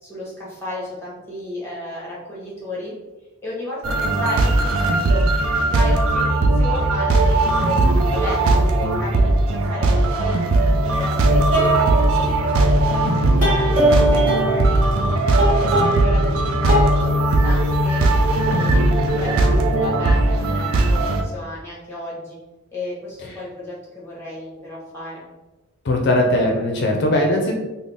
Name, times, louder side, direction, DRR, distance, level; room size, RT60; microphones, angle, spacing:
voice 1, 0.0-2.9 3.4-5.2 5.7-7.8 8.1-10.4 10.8-15.2 15.6-18.1 18.5-22.4 22.7-25.3, left 1 dB, 10° left, -5 dB, 1.0 m, -33 dB
sound 1, 3.8-21.2, right 2 dB, 80° right, 0.4 m, -18 dB
sound 2, 11.5-12.8 13.4-16.3 16.7-17.0, right 1 dB, 40° right, 1.2 m, -22 dB
voice 2, 25.8-27.6, left 1 dB, 50° left, 1 dB, 0.5 m, -19 dB
3.9 x 2.0 x 3.3 m, 1.1 s
head